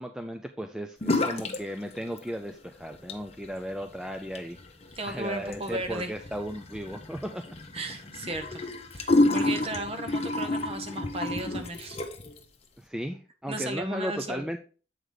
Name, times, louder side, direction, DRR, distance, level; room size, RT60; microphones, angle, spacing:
voice 1, 0.0-4.6 5.1-7.6 12.8-14.6, equal, 5° right, 6 dB, 0.3 m, -35 dB
sound 1, 1.0-1.6 1.9-2.5 2.9-12.4, left 2 dB, 35° left, 0.9 m, -30 dB
voice 2, 5.0-6.1 7.7-12.0 13.5-14.4, right 1 dB, 30° right, 7 dB, 0.9 m, -35 dB
7.8 x 4.9 x 3.8 m, 0.37 s
head